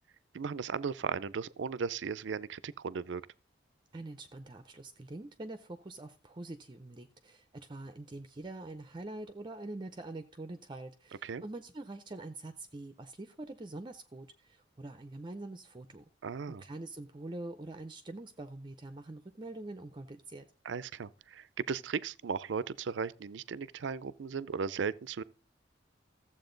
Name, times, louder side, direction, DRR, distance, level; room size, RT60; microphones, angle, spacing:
voice 1, 0.3-3.2 11.2-11.4 16.2-16.6 20.6-25.2, right 5 dB, 70° right, 0.5 m, -36 dB
voice 2, 3.9-16.0 16.5-20.5, right 2 dB, 25° right, 0.6 m, -45 dB
14.0 x 7.5 x 3.8 m
head